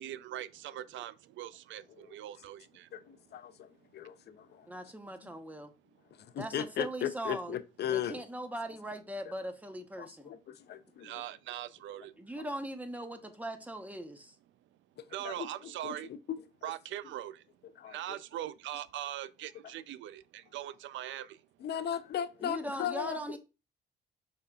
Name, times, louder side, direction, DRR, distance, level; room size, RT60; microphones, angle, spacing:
voice 1, 0.0-2.9 11.0-12.1 15.1-16.1 16.6-17.4 17.9-21.4, right 12 dB, 70° right, 0.4 m, -41 dB
voice 2, 2.9-4.7 6.2-8.2 10.0-11.3 15.2-15.5 15.8-15.9 16.3-16.4 17.8-18.2 21.6-23.4, left 9 dB, 55° left, 0.5 m, -37 dB
voice 3, 4.7-5.7 6.4-7.6 7.9-10.3 12.2-14.3 22.4-23.4, right 1 dB, 10° right, 0.8 m, -40 dB
5.4 x 3.9 x 2.3 m
cardioid pair, 90°, 20 cm